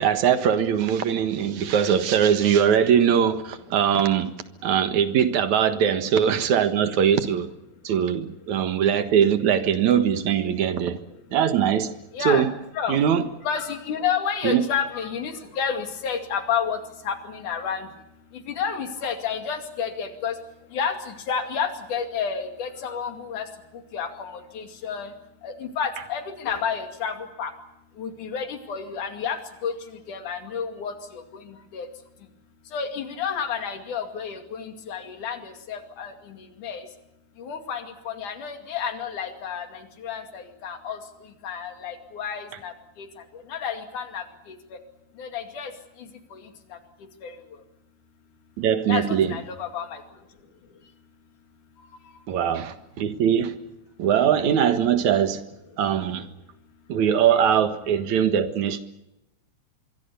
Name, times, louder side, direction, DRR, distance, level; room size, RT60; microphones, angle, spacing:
voice 1, 0.0-4.3 4.6-7.5 7.8-11.0 11.3-11.9 12.2-12.5 12.9-13.2 14.4-14.6 48.6-49.4 52.3-53.5 54.0-55.4 55.8-56.3 56.9-58.8, right 8 dB, 70° right, 10 dB, 2.9 m, -21 dB
voice 2, 12.1-12.5 12.8-13.0 13.5-16.8 17.0-17.9 18.5-20.3 20.7-23.5 23.9-25.1 25.4-27.5 28.0-29.7 30.1-31.2 31.7-31.9 32.7-36.1 36.6-36.8 37.4-41.0 41.4-42.7 43.5-44.2 45.2-45.7 46.3-46.4 47.2-47.3 48.9-50.0, left 7 dB, 85° left, 7 dB, 3.9 m, -30 dB
25.0 x 23.5 x 7.0 m, 0.90 s
omnidirectional pair, 3.5 m